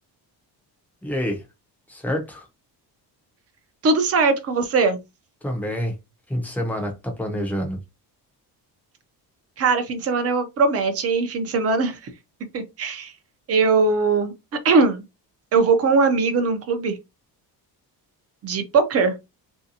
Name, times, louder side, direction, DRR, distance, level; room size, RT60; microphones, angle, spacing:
voice 1, 1.0-1.4 1.9-2.4 5.4-5.9 6.3-7.8, equal, 5° left, 0.5 m, -27 dB
voice 2, 3.8-5.0 9.6-12.0 12.5-13.1 13.5-14.3 14.6-15.0 15.5-17.0 18.4-19.1, right 4 dB, 35° right, 0.6 m, -20 dB
3.3 x 2.7 x 2.7 m
cardioid pair, 175°, 40 cm